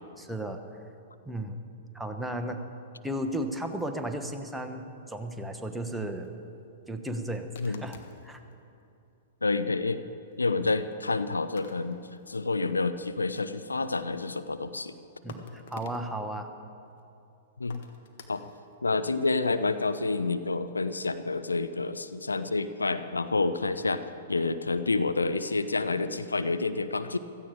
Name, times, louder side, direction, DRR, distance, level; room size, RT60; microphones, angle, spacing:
voice 1, 0.2-0.6 1.3-1.6 1.9-2.7 3.0-6.3 6.9-8.0 8.2-8.4 15.2-16.5, right 1 dB, 5° right, 4 dB, 1.2 m, -34 dB
sound 1, 5.5-5.6 6.1-6.3 7.6-8.5 9.6-9.7 10.2-10.5 11.6-12.5 12.8-12.9 13.1-13.9 14.7-14.9 15.3-16.1 16.9-17.0 17.7-18.8 19.4-20.2, left 5 dB, 60° left, 1.4 m, -50 dB
voice 2, 9.4-10.0 10.4-12.0 12.3-15.0 17.6-17.8 18.3-18.5 18.8-24.0 24.3-27.2, left 3 dB, 85° left, 11 dB, 0.6 m, -28 dB
16.0 x 14.5 x 4.9 m, 2.6 s
figure-of-eight pair, 110°, 0 cm